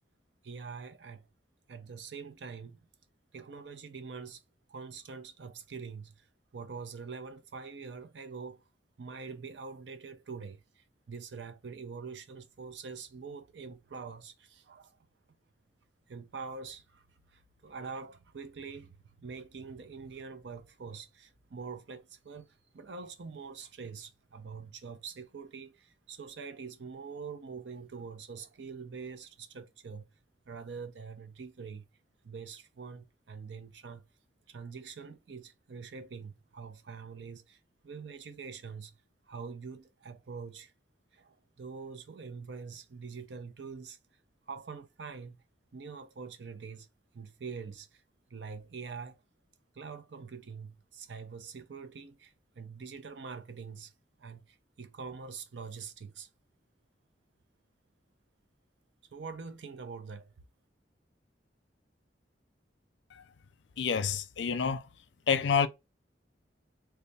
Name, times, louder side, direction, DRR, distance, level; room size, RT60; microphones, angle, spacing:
voice 1, 0.4-1.2 1.7-2.9 3.3-4.4 4.7-6.3 6.5-8.6 9.0-15.0 16.1-17.0 17.3-22.5 22.7-30.1 30.5-31.9 32.2-34.0 34.5-37.6 37.8-38.9 39.3-40.7 41.1-44.0 44.5-45.4 45.7-46.9 47.1-48.0 48.3-49.2 49.7-53.9 54.2-56.3 59.1-60.3, right 5 dB, 75° right, 0.6 m, -44 dB
voice 2, 63.8-64.8 65.3-65.7, left 6 dB, 80° left, 0.5 m, -28 dB
3.3 x 2.3 x 4.0 m
head